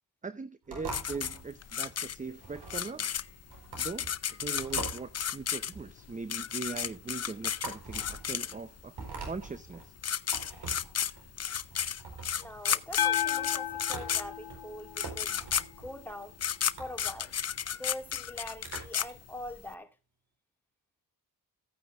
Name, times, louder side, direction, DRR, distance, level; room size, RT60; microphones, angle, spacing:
voice 1, 0.2-3.1 3.8-8.9 9.3-9.9, right 4 dB, 20° right, 0.7 m, -40 dB
sound 1, 0.7-19.1, right 3 dB, 80° right, 4.4 m, -45 dB
sound 2, 0.9-8.8 9.7-9.8 10.0-19.7, left 8 dB, 40° left, 0.6 m, -33 dB
voice 2, 12.4-15.4 15.8-16.4 16.8-17.3 17.7-19.9, left 1 dB, 5° left, 2.1 m, -43 dB
sound 3, 13.0-15.4, left 10 dB, 70° left, 0.8 m, -33 dB
15.5 x 9.2 x 2.5 m
cardioid pair, 70°, 39 cm